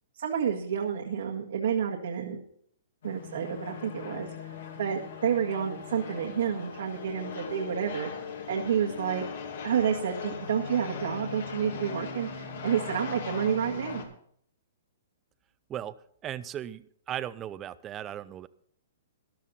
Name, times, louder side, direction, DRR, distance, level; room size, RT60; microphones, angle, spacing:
voice 1, 0.1-2.4 3.0-4.3 4.8-8.1 8.5-9.2 9.6-14.0, right 8 dB, 80° right, -1 dB, 1.8 m, -29 dB
sound 1, 3.0-14.0, left 6 dB, 70° left, 2.6 m, -40 dB
voice 2, 16.2-18.5, right 11 dB, 20° right, 15 dB, 0.5 m, -37 dB
14.0 x 12.0 x 4.2 m, 0.65 s
hypercardioid pair, 150°, 0 cm